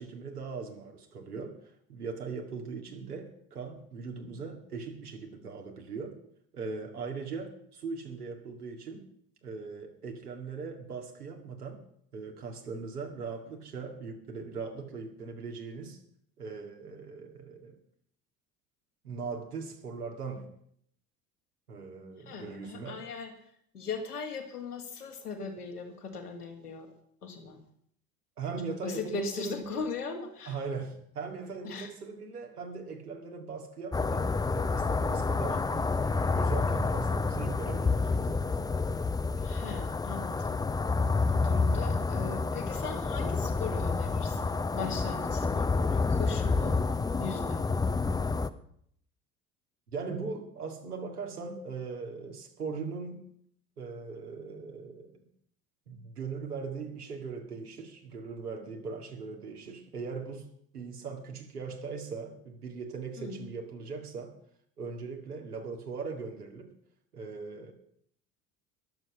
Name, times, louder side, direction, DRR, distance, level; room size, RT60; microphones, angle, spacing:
voice 1, 0.0-6.2 6.5-9.0 9.4-11.8 12.1-16.0 16.4-17.8 19.0-20.5 21.7-23.0 28.4-29.8 30.5-38.4 49.9-53.2 53.8-55.1 55.9-60.5 60.7-64.4 64.8-66.7 67.1-67.7, right 4 dB, 80° right, 3 dB, 2.3 m, -40 dB
voice 2, 22.3-23.3 23.7-26.9 27.2-27.6 28.8-30.6 31.6-31.9 39.4-40.6 41.0-47.8 63.2-63.5, left 4 dB, 80° left, 2 dB, 2.3 m, -39 dB
sound 1, 33.9-48.5, left 4 dB, 10° left, 0.5 m, -29 dB
21.0 x 7.7 x 5.8 m, 0.68 s
figure-of-eight pair, 60°, 45 cm